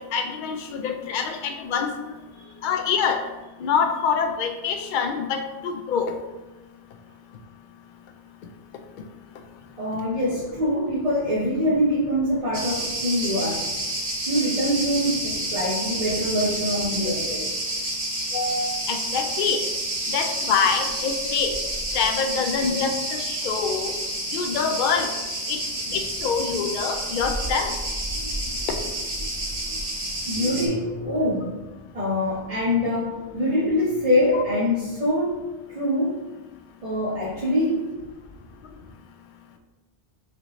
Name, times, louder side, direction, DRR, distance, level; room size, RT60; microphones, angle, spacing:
voice 1, 0.0-2.1 2.6-3.2 3.6-6.1 18.3-19.6 20.1-21.5 21.9-23.9 24.3-25.1 25.5-25.6 25.9-27.7 34.3-34.4, left 6 dB, 60° left, 6 dB, 0.6 m, -25 dB
voice 2, 9.8-13.6 14.3-17.5 25.9-26.1 28.1-31.5 31.9-36.2 36.8-37.9, left 1 dB, 40° right, -8 dB, 0.9 m, -25 dB
Cricket, 12.5-30.7, right 1 dB, 85° right, 1.5 m, -29 dB
6.2 x 2.7 x 3.1 m, 1.1 s
omnidirectional pair, 1.0 m